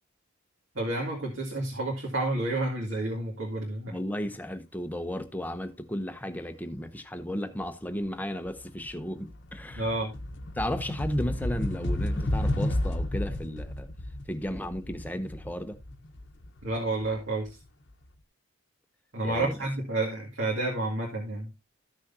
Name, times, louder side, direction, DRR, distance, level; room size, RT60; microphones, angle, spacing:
voice 1, 0.8-3.9 9.7-10.1 16.6-17.6 19.1-21.5, right 2 dB, 60° right, 2.1 m, -30 dB
voice 2, 3.9-9.9 10.6-13.9 14.3-15.8 19.2-19.6, equal, 10° left, 0.7 m, -34 dB
sound 1, 8.0-8.2 8.6-17.4, left 1 dB, 55° left, 0.9 m, -32 dB
14.0 x 6.3 x 2.7 m
head